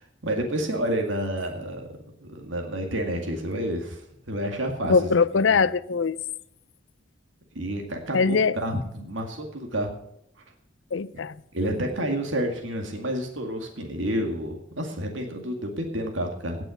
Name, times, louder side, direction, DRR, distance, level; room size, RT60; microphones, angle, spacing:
voice 1, 0.0-4.9 5.5-5.6 7.6-9.9 11.5-16.6, right 1 dB, 80° right, 2.1 m, -29 dB
voice 2, 4.8-6.2 8.1-8.6 10.9-11.4, left 5 dB, 80° left, 0.6 m, -22 dB
17.5 x 6.1 x 7.0 m
head